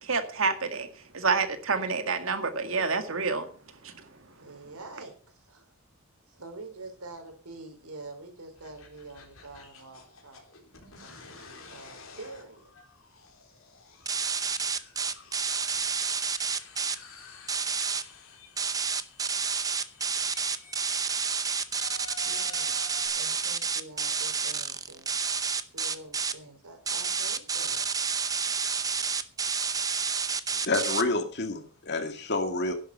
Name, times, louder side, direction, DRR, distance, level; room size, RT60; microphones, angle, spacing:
voice 1, 0.0-3.5 3.8-4.1, right 4 dB, 65° right, 8 dB, 2.0 m, -28 dB
voice 2, 4.4-5.7 6.3-10.5 11.0-12.7 22.3-25.1 25.7-27.9, right 2 dB, 85° right, 5 dB, 4.3 m, -46 dB
sound 1, 8.6-23.1, left 4 dB, 65° left, 3.9 m, -50 dB
sound 2, 14.1-17.0 17.5-18.0 18.6-26.3 26.9-31.0, right 5 dB, 15° right, 0.7 m, -29 dB
voice 3, 30.6-32.7, left 2 dB, 50° left, 6 dB, 2.3 m, -28 dB
11.0 x 11.0 x 5.6 m, 0.39 s
head